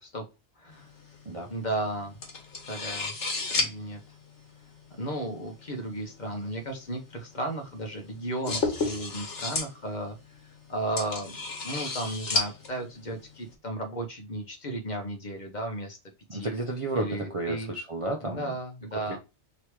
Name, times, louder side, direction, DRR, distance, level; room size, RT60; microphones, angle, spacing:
voice 1, 0.6-0.9 1.5-2.2 2.6-3.1 3.6-4.0 5.0-10.2 10.4-11.4 11.6-16.0 16.3-16.5 17.0-17.7 18.2-19.2, right 1 dB, 45° left, 3 dB, 0.9 m, -34 dB
sound 1, 0.7-13.6, left 3 dB, 80° left, 1.5 m, -35 dB
voice 2, 16.3-18.5 19.1-19.2, right 2 dB, 40° right, 1 dB, 0.5 m, -32 dB
3.1 x 2.9 x 4.6 m, 0.27 s
omnidirectional pair, 1.2 m